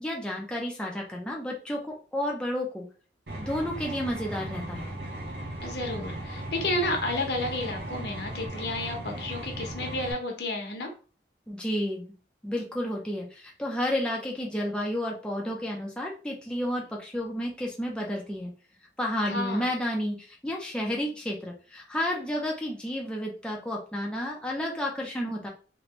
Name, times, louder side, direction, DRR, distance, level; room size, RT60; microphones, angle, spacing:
voice 1, 0.0-2.8 3.4-4.9 11.5-12.1 12.4-18.5 19.0-25.5, left 1 dB, 5° left, -2 dB, 0.6 m, -31 dB
sound 1, 3.3-10.1, right 1 dB, 70° right, 1.1 m, -37 dB
voice 2, 5.6-10.9 19.2-19.7, left 2 dB, 70° left, 3 dB, 1.0 m, -31 dB
3.2 x 3.0 x 3.0 m, 0.37 s
head